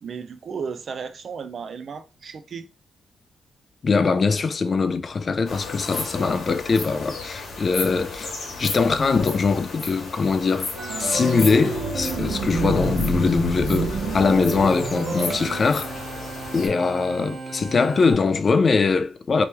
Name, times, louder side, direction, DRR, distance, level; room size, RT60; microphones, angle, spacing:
voice 1, 0.0-2.7, right 6 dB, 50° right, 0.4 m, -34 dB
voice 2, 3.8-8.3 8.6-10.7 11.0-15.9 16.5-19.4, left 4 dB, 40° left, 0.3 m, -22 dB
sound 1, 5.4-16.7, left 4 dB, 70° left, 1.2 m, -34 dB
Organ, 10.8-18.1, right 3 dB, 75° right, 1.1 m, -29 dB
3.0 x 2.9 x 3.3 m
cardioid pair, 125°, 0 cm